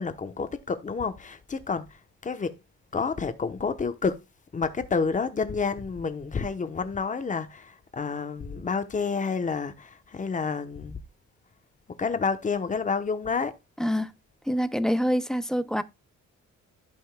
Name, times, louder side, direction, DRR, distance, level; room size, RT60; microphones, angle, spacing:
voice 1, 0.0-2.6 2.9-4.2 4.5-11.0 11.9-13.5, left 5 dB, 25° left, 0.9 m, -29 dB
voice 2, 13.8-14.1 14.5-15.8, equal, ahead, 0.4 m, -26 dB
15.0 x 5.4 x 2.2 m
wide cardioid pair, 175°, 31 cm